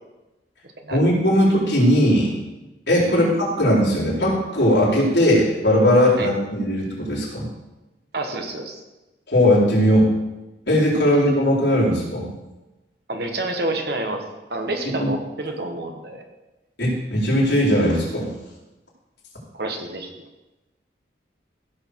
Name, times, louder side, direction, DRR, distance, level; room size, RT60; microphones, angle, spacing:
voice 1, 0.9-2.3 2.9-7.5 9.3-10.1 10.7-12.3 15.0-15.1 16.8-18.3, equal, 70° left, -6 dB, 4.4 m, -18 dB
voice 2, 8.1-8.8 13.1-14.2 14.5-16.2 19.5-20.1, right 2 dB, 60° right, 4 dB, 1.5 m, -28 dB
16.0 x 6.6 x 4.7 m, 1.1 s
head